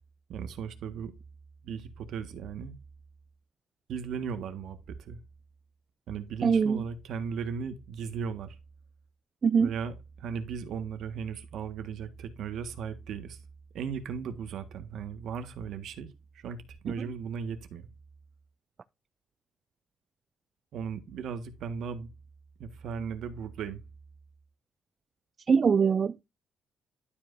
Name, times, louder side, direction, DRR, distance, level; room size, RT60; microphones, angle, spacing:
voice 1, 0.3-1.1 1.6-2.7 3.9-5.2 6.1-8.6 9.6-13.4 13.7-17.9 20.7-22.1 22.6-23.8, right 6 dB, 75° right, 1.5 m, -37 dB
voice 2, 6.4-6.8 9.4-9.7 25.5-26.2, right 6 dB, 45° right, 0.3 m, -23 dB
12.0 x 5.1 x 2.6 m
cardioid pair, 90°, 0 cm